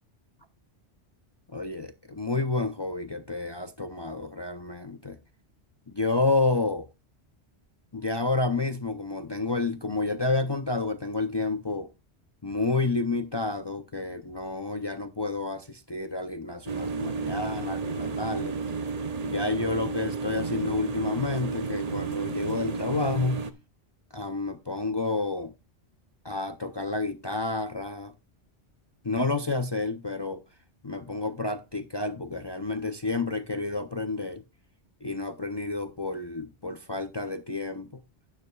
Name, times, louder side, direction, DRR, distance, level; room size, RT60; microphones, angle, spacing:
voice 1, 1.5-5.2 5.9-6.9 7.9-11.9 12.4-18.6 19.2-23.5 24.1-25.5 26.2-28.1 29.0-30.4 30.8-34.4 35.0-38.0, left 3 dB, 30° left, 0.5 m, -30 dB
sound 1, 16.7-23.5, right 4 dB, 40° right, 0.7 m, -32 dB
12.0 x 9.6 x 2.3 m
omnidirectional pair, 1.1 m